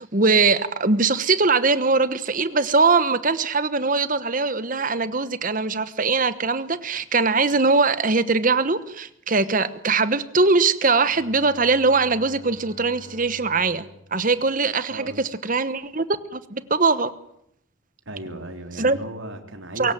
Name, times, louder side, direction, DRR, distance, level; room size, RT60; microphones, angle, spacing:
voice 1, 0.0-13.8 14.1-16.1 16.3-17.1 18.8-19.0 19.8-19.9, right 4 dB, 40° right, 13 dB, 1.2 m, -21 dB
Bowed string instrument, 10.9-15.5, left 1 dB, 30° left, 2.0 m, -48 dB
voice 2, 14.9-15.2 18.1-19.9, right 1 dB, 70° right, 5 dB, 3.6 m, -36 dB
23.5 x 16.0 x 9.4 m, 0.74 s
head